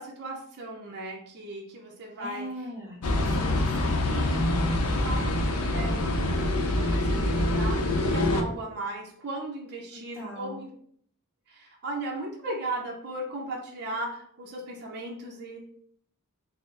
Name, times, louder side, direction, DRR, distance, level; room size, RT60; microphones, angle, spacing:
voice 1, 0.0-2.5 5.0-5.3 5.6-5.9 6.5-10.7 11.5-15.6, right 2 dB, 50° right, -1 dB, 0.6 m, -36 dB
voice 2, 2.2-4.4 10.1-10.6, equal, ahead, -10 dB, 1.3 m, -40 dB
sound 1, 3.0-8.4, left 1 dB, 75° left, 0.6 m, -25 dB
4.1 x 2.0 x 3.8 m, 0.63 s
head